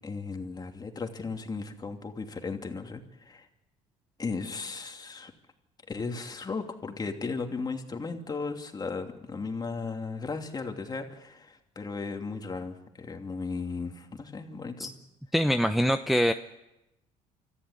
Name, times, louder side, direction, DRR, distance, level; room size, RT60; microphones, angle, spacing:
voice 1, 0.0-3.5 4.2-5.3 5.9-14.9, left 4 dB, 25° left, 4 dB, 2.9 m, -36 dB
voice 2, 15.3-16.3, equal, ahead, 10 dB, 0.8 m, -24 dB
25.5 x 14.5 x 9.7 m, 0.94 s
supercardioid pair, 90°, 15 cm